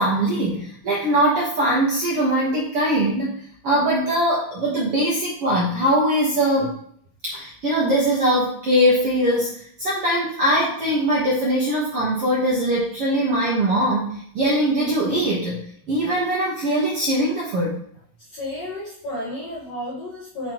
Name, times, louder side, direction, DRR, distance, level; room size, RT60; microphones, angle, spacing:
voice 1, 0.0-3.4 3.6-6.7 7.2-15.6 15.9-17.8, right 1 dB, 60° right, -5 dB, 1.5 m, -21 dB
voice 2, 18.3-20.5, left 1 dB, 50° left, -9 dB, 2.4 m, -32 dB
9.3 x 4.5 x 3.0 m, 0.63 s
omnidirectional pair, 4.6 m